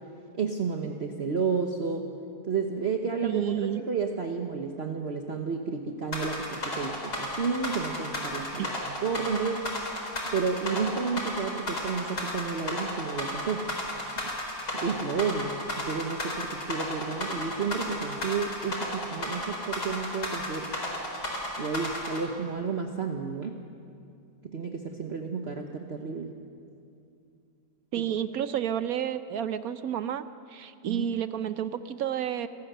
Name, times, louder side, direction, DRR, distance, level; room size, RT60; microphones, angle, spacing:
voice 1, 0.4-2.1 2.5-3.4 3.8-8.7 9.0-9.6 10.3-13.6 14.7-20.7 21.6-23.6 24.5-26.3 30.9-31.1, right 5 dB, 45° right, 3 dB, 1.3 m, -31 dB
voice 2, 3.2-3.8 8.6-8.7 27.9-32.5, right 9 dB, 70° right, 12 dB, 1.1 m, -30 dB
sound 1, 6.1-22.2, left 1 dB, 80° left, 4.9 m, -33 dB
27.0 x 17.5 x 6.8 m, 2.5 s
omnidirectional pair, 1.7 m